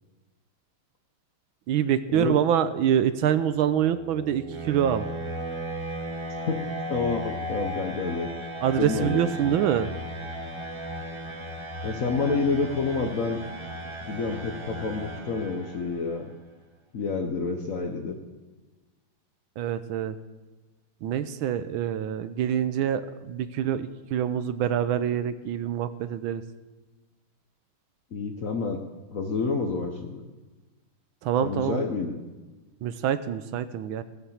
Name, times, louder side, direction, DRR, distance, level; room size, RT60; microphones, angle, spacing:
voice 1, 1.7-5.1 8.6-9.9 19.6-20.2 21.0-26.4 31.2-31.8 32.8-34.0, right 9 dB, 75° right, 13 dB, 1.4 m, -26 dB
sound 1, 3.3-16.1, equal, 25° right, 0.7 m, -36 dB
voice 2, 6.5-8.3 8.8-9.6 11.8-13.4 14.0-16.3 16.9-18.2 28.1-28.8 29.1-30.2 31.4-32.2, left 4 dB, 55° left, 5 dB, 1.0 m, -29 dB
15.5 x 8.0 x 7.2 m, 1.2 s
omnidirectional pair, 2.4 m